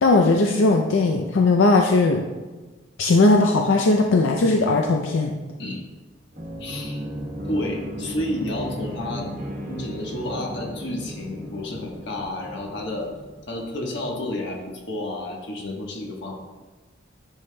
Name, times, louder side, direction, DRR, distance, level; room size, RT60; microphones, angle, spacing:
voice 1, 0.0-2.2 3.0-5.4, left 3 dB, 90° left, 2 dB, 0.5 m, -18 dB
sound 1, 6.3-13.9, equal, 40° right, 1.0 m, -35 dB
voice 2, 6.6-7.0 7.4-9.3 9.7-13.1 13.5-16.4, left 1 dB, 65° left, 0 dB, 1.2 m, -31 dB
9.6 x 5.5 x 2.2 m, 1.2 s
head